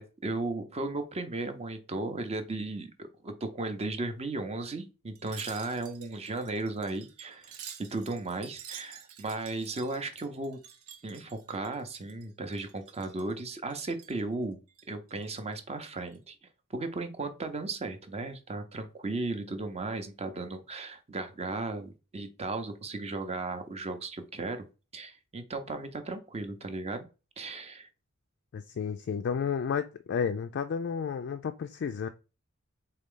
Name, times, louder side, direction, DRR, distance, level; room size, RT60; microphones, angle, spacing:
voice 1, 0.0-7.6 7.9-10.6 11.0-14.6 14.9-16.4 16.7-24.6 24.9-27.1 27.4-27.9, right 2 dB, 30° right, 0.6 m, -35 dB
Wind chime, 5.2-12.3 12.5-13.3 13.7-14.2 14.7-15.6 16.0-16.2, right 8 dB, 85° right, 0.8 m, -49 dB
voice 2, 28.5-32.1, left 6 dB, 50° left, 0.3 m, -32 dB
4.0 x 3.3 x 3.7 m
head